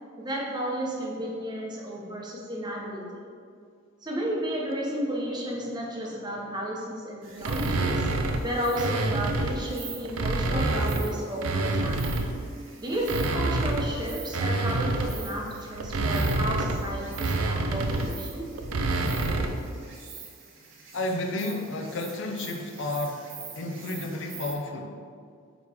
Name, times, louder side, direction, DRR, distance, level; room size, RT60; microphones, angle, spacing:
voice 1, 0.2-3.0 4.0-8.1 8.4-12.1 12.8-18.5, equal, 20° right, -2 dB, 0.9 m, -32 dB
Insect, 7.2-24.5, right 6 dB, 65° right, 1.0 m, -46 dB
sound 1, 7.4-9.6 10.0-12.5 12.9-19.7, right 2 dB, 85° right, 0.5 m, -28 dB
voice 2, 20.9-23.3 23.5-25.0, left 2 dB, 65° left, 3 dB, 0.5 m, -32 dB
8.9 x 3.2 x 3.5 m, 2.2 s
head